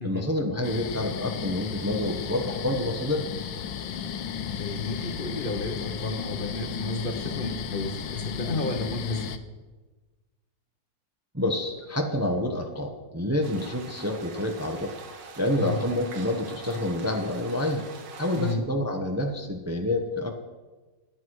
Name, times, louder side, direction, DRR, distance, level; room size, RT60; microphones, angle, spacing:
voice 1, 0.0-3.3 11.3-14.9 15.4-17.8 18.1-20.3, left 1 dB, 10° right, 3 dB, 0.9 m, -28 dB
sound 1, 0.6-9.4, left 7 dB, 85° left, 1.5 m, -34 dB
voice 2, 4.6-9.3 15.6-15.8 18.3-18.6, left 2 dB, 35° left, 2 dB, 1.0 m, -32 dB
sound 2, 13.4-18.6, right 5 dB, 75° right, 1.9 m, -44 dB
17.5 x 10.5 x 4.8 m, 1.3 s
omnidirectional pair, 2.0 m